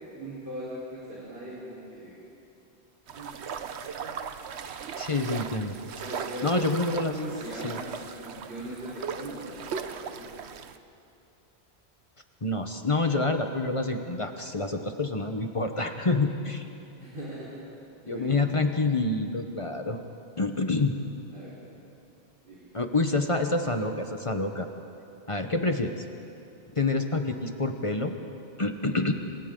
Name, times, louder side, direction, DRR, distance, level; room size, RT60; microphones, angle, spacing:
voice 1, 0.1-2.2 3.1-3.6 4.0-4.1 6.0-6.7 7.1-10.3 17.0-17.5 18.0-18.5 21.3-21.6 22.4-22.7, right 1 dB, 70° right, -9 dB, 4.6 m, -40 dB
sound 1, 3.1-10.8, right 6 dB, 85° right, 1.1 m, -38 dB
voice 2, 5.0-5.8 6.4-7.2 7.6-7.8 12.4-16.7 18.1-20.0 20.4-20.9 22.7-24.7 25.3-25.9 26.8-28.1 28.6-29.1, left 2 dB, 30° left, 5 dB, 1.1 m, -27 dB
27.5 x 25.5 x 3.8 m, 2.7 s
omnidirectional pair, 1.1 m